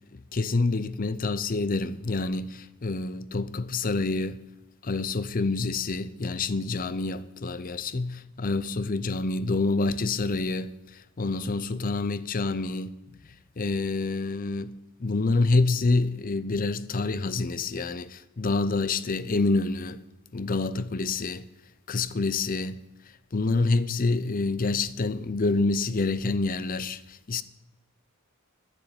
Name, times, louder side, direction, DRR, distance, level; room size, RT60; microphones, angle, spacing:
voice 1, 0.1-4.4 4.8-13.0 13.6-14.7 15.0-20.0 20.3-21.5 21.9-22.8 23.3-27.4, left 3 dB, 40° left, 0.6 m, -27 dB
12.5 x 7.1 x 9.7 m
head